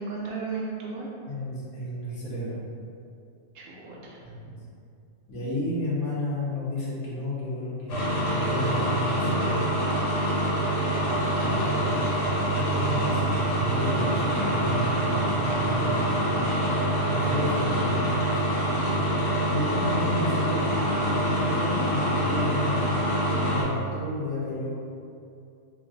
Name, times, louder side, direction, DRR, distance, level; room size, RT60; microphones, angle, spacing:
voice 1, 0.0-1.1 3.5-4.3 11.3-12.3 19.4-19.7, right 3 dB, 65° right, -4 dB, 1.0 m, -36 dB
voice 2, 1.3-2.6 4.2-4.5 5.3-9.8 11.4-11.8 12.1-16.0 17.0-18.4 19.4-23.0 23.5-24.7, left 1 dB, 80° left, -7 dB, 1.4 m, -32 dB
sound 1, 7.9-23.6, right 1 dB, 65° left, 1.2 m, -25 dB
3.6 x 2.1 x 3.9 m, 2.5 s
omnidirectional pair, 1.5 m